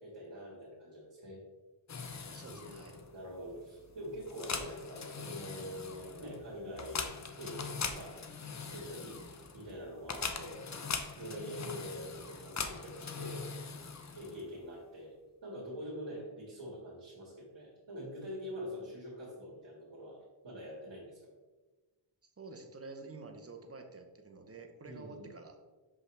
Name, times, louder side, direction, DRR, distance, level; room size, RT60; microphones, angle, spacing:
voice 1, 0.0-1.4 2.5-7.0 7.3-8.2 8.7-10.6 10.9-13.5 14.1-15.1 15.4-20.2 20.4-21.2 24.8-25.3, equal, 70° right, -7 dB, 1.9 m, -45 dB
sound 1, 1.9-14.6, left 5 dB, 35° left, 0.6 m, -42 dB
voice 2, 2.3-3.0 11.3-11.5 22.4-25.6, right 3 dB, 30° right, 4 dB, 0.8 m, -49 dB
6.1 x 5.4 x 3.3 m, 1.3 s
wide cardioid pair, 100°, 47 cm